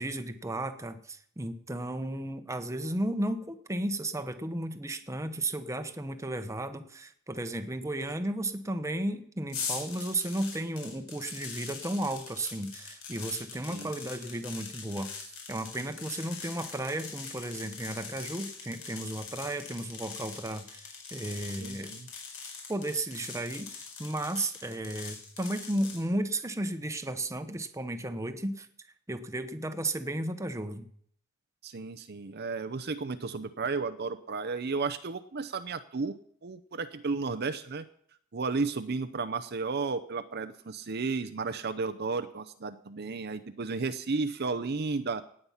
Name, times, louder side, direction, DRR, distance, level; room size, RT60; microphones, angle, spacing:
voice 1, 0.0-21.9 22.7-28.7 29.1-30.9, right 1 dB, 15° right, 8 dB, 0.9 m, -34 dB
sound 1, 9.5-26.0, left 5 dB, 70° left, 5.0 m, -42 dB
voice 2, 21.6-22.1 31.6-36.1 36.4-37.8 38.3-45.2, right 4 dB, 50° right, 10 dB, 0.6 m, -33 dB
17.5 x 8.8 x 5.7 m, 0.62 s
head